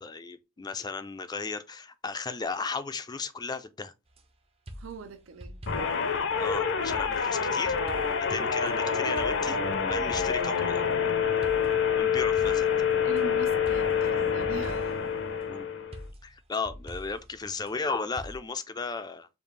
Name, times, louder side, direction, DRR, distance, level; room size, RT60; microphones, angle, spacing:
voice 1, 0.0-3.9 6.4-7.7 8.2-9.6 9.9-10.8 12.0-12.7 15.5-15.7 16.2-19.3, left 4 dB, 20° left, 0.4 m, -35 dB
sound 1, 4.1-4.3 4.7-6.1 6.9-8.7 9.2-10.6 11.4-13.2 13.7-15.1 15.9-17.8 18.2-18.4, equal, 30° right, 0.5 m, -45 dB
voice 2, 4.8-5.6 8.3-8.6 13.0-15.0, right 5 dB, 75° right, 0.5 m, -42 dB
sound 2, 5.7-16.0, left 6 dB, 65° left, 0.6 m, -27 dB
5.2 x 2.4 x 3.2 m
head